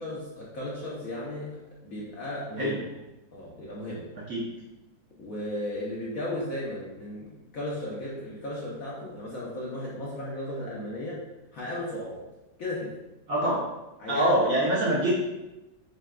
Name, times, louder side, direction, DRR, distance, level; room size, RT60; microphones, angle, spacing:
voice 1, 0.0-2.8 3.3-4.1 5.2-11.2 11.5-12.2 12.6-13.0 14.0-14.3, left 1 dB, 60° left, -6 dB, 0.9 m, -35 dB
voice 2, 13.3-13.6 14.1-15.1, right 1 dB, 60° right, -6 dB, 1.0 m, -24 dB
6.4 x 2.2 x 2.4 m, 1.0 s
omnidirectional pair, 2.1 m